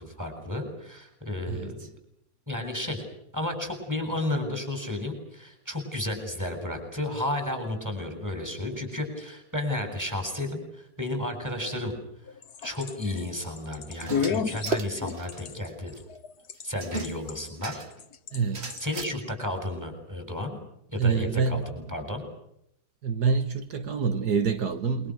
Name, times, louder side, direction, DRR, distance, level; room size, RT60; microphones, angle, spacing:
voice 1, 0.0-1.8 2.5-3.1 3.3-12.0 12.6-15.9 16.6-17.8 18.8-20.6 20.9-22.3, left 1 dB, 10° right, 7.9 m, -32 dB
voice 2, 1.5-1.9 18.3-18.8 21.0-21.6 23.0-25.1, right 5 dB, 75° right, 2.0 m, -26 dB
sound 1, 12.3-16.6 17.0-17.5 18.0-18.4 18.7-18.8, left 6 dB, 70° left, 1.7 m, -32 dB
sound 2, 13.9-15.4 15.7-15.8 15.9-16.0 16.8-18.0 18.5-19.0, right 4 dB, 40° right, 2.1 m, -34 dB
28.5 x 24.5 x 6.5 m
omnidirectional pair, 1.8 m